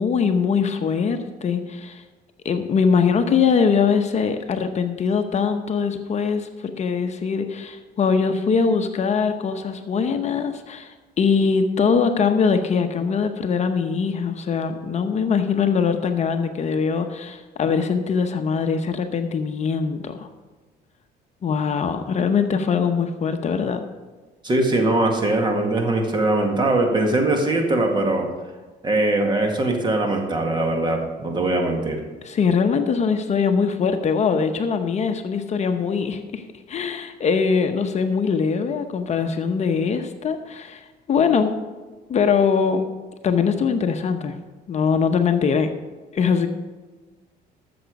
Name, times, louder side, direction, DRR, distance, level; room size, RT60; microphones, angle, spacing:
voice 1, 0.0-2.0 2.4-20.3 21.4-23.8 32.2-36.4 36.7-41.6 42.1-42.8 43.2-44.4 44.7-45.7 46.1-46.5, left 6 dB, 40° left, 7 dB, 0.9 m, -22 dB
voice 2, 24.4-28.3 28.8-32.0, right 2 dB, 25° right, 3 dB, 1.9 m, -21 dB
13.0 x 6.9 x 5.3 m, 1.3 s
cardioid pair, 110°, 17 cm